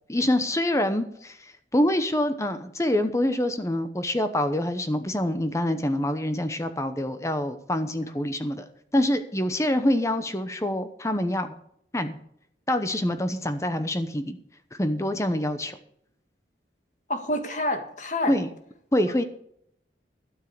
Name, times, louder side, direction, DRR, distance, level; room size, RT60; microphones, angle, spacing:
voice 1, 0.1-8.7 8.9-11.6 11.9-12.2 12.7-14.4 14.7-15.8 18.3-18.5 18.9-19.2, left 1 dB, 15° left, 9 dB, 0.8 m, -26 dB
voice 2, 17.1-18.3, left 1 dB, 40° left, 6 dB, 1.9 m, -28 dB
12.5 x 7.4 x 6.7 m, 0.70 s
head